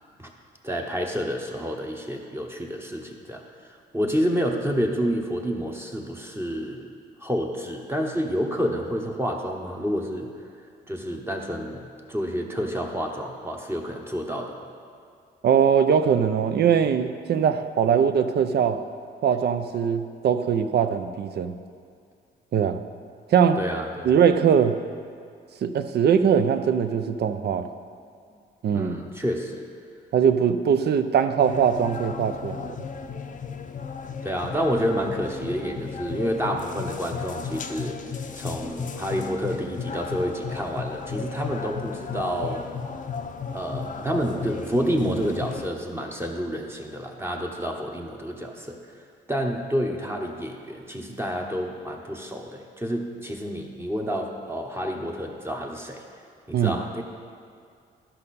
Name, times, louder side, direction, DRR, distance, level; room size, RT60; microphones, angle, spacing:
voice 1, 0.6-6.9 7.2-10.3 10.9-11.8 12.1-14.6 23.6-24.1 28.7-29.7 34.2-38.0 38.3-42.7 43.5-48.8 49.3-56.0 56.5-57.0, equal, 10° right, 0 dB, 1.0 m, -29 dB
voice 2, 15.4-18.8 19.2-21.5 22.5-22.8 23.3-23.6 24.1-24.8 25.6-27.7 28.6-29.0 30.1-32.7 56.5-56.8, right 7 dB, 55° right, 10 dB, 0.6 m, -21 dB
sound 1, 31.4-45.7, left 6 dB, 40° left, 0.6 m, -34 dB
13.0 x 5.4 x 4.2 m, 2.3 s
cardioid pair, 90°, 20 cm